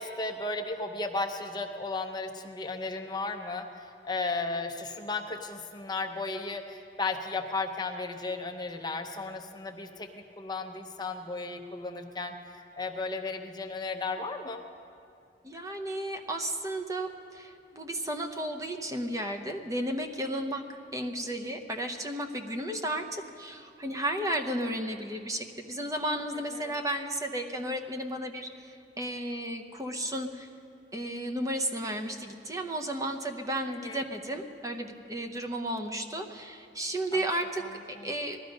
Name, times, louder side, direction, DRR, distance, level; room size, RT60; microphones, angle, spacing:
voice 1, 0.0-10.1 10.4-14.6 26.5-26.7 33.7-34.0 37.1-37.2 37.6-37.7 38.0-38.1, left 3 dB, 25° left, 5 dB, 0.7 m, -35 dB
voice 2, 15.4-30.5 30.9-38.4, right 1 dB, 20° right, 4 dB, 0.8 m, -33 dB
18.5 x 13.0 x 5.2 m, 2.7 s
head